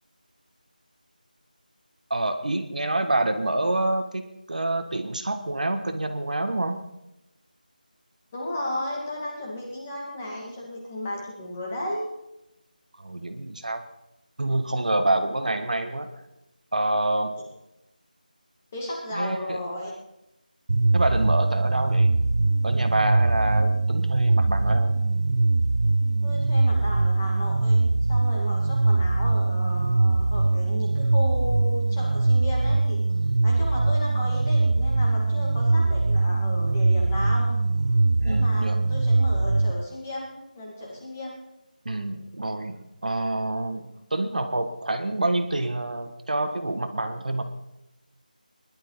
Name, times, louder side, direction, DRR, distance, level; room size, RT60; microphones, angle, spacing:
voice 1, 2.1-6.8 12.9-13.9 14.4-16.1 16.7-17.4 19.1-19.6 20.9-22.1 22.6-25.0 38.2-38.8 41.8-47.4, right 2 dB, 55° right, 7 dB, 1.5 m, -27 dB
voice 2, 8.3-12.1 18.7-19.9 26.2-27.8 28.1-33.0 33.4-41.4, left 1 dB, 15° left, -3 dB, 2.0 m, -34 dB
sound 1, 20.7-39.7, right 2 dB, 35° right, 0.4 m, -22 dB
20.5 x 11.5 x 4.0 m, 0.88 s
figure-of-eight pair, 175°, 5 cm